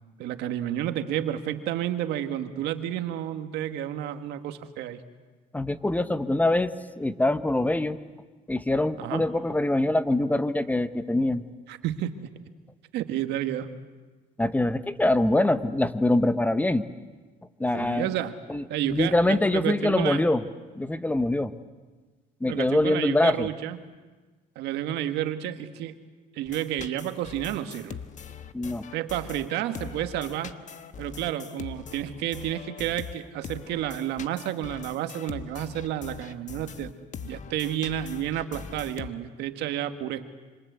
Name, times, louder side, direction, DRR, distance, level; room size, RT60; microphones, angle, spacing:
voice 1, 0.2-5.0 9.0-9.2 11.7-12.3 12.9-13.7 17.7-18.3 18.7-20.2 22.4-23.8 24.6-26.0 26.4-28.0 28.9-30.5 31.0-36.9 37.2-40.2, right 11 dB, 85° right, 8 dB, 1.8 m, -30 dB
voice 2, 5.5-8.0 8.5-11.4 14.4-16.9 17.6-18.1 18.5-20.4 20.7-21.5 22.4-23.5 28.5-28.9, left 1 dB, 10° left, 12 dB, 1.1 m, -24 dB
sound 1, 26.4-39.1, left 7 dB, 45° left, 1.2 m, -42 dB
26.5 x 26.5 x 8.2 m, 1.3 s
cardioid pair, 110°, 17 cm